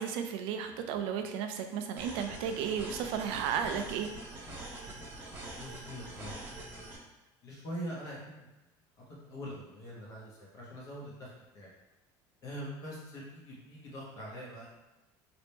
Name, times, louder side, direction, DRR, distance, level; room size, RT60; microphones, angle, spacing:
voice 1, 0.0-4.1, right 7 dB, 65° right, 6 dB, 0.5 m, -34 dB
sound 1, 2.0-7.0, right 1 dB, 20° right, 0.8 m, -44 dB
voice 2, 5.5-6.5 7.4-8.5 9.0-11.7 12.4-14.7, equal, 35° left, -5 dB, 1.0 m, -43 dB
4.2 x 2.9 x 3.4 m, 1.0 s
cardioid pair, 180°, 10 cm